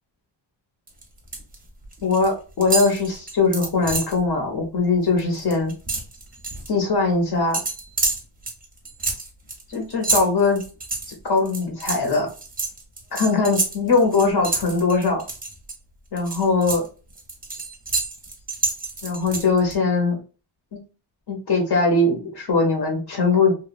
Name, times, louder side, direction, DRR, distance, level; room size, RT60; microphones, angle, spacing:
sound 1, 0.9-1.5 1.8-2.3 2.6-4.2 4.6-4.8 5.1-6.7 7.5-15.7 16.2-19.7, right 3 dB, 20° right, 0.6 m, -28 dB
voice 1, 2.0-5.7 6.7-7.6 9.7-10.6 11.1-12.3 13.1-15.2 16.1-16.9 19.0-20.2 20.7-20.8 21.3-23.5, left 3 dB, 60° left, 1 dB, 0.7 m, -21 dB
2.9 x 2.1 x 2.3 m, 0.35 s
wide cardioid pair, 165°, 46 cm